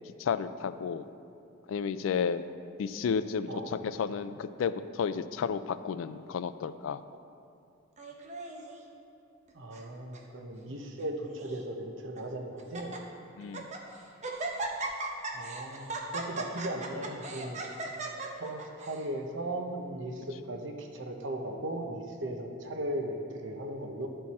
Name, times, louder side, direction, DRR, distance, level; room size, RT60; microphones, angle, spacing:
voice 1, 0.2-1.1 1.7-2.4 2.8-7.0 10.7-10.8 13.4-13.7, left 6 dB, 80° left, 13 dB, 0.3 m, -32 dB
Laughter, 8.0-8.8 9.5-9.9 10.1-10.2 11.0-11.6 12.2-12.3 12.6-13.0 13.4-13.8 14.2-19.0, right 3 dB, 35° right, 0.7 m, -38 dB
voice 2, 9.5-12.9 15.3-17.6 18.4-24.1, right 1 dB, 70° right, 3 dB, 0.8 m, -37 dB
11.5 x 4.5 x 4.2 m, 2.5 s
head